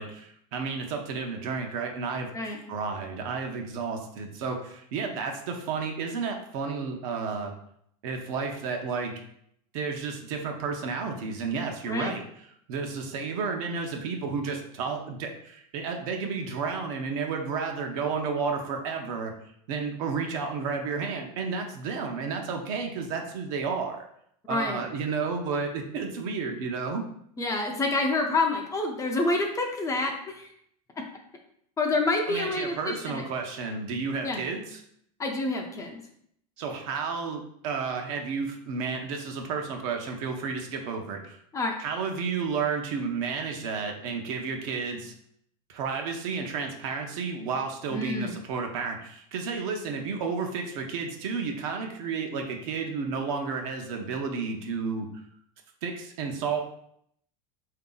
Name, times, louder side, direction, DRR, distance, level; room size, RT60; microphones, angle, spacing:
voice 1, 0.0-7.5 8.0-9.1 9.7-12.2 12.7-19.3 19.7-24.1 24.5-27.1 32.3-34.8 36.6-41.4 41.8-45.1 45.7-55.1 55.8-56.6, right 5 dB, 65° right, 3 dB, 0.8 m, -32 dB
voice 2, 24.5-24.8 27.4-30.5 31.8-33.2 34.2-34.4 35.2-36.0 41.5-41.7 47.9-48.3, left 2 dB, 15° left, 2 dB, 0.5 m, -28 dB
3.5 x 2.8 x 3.8 m, 0.70 s
supercardioid pair, 140°, 19 cm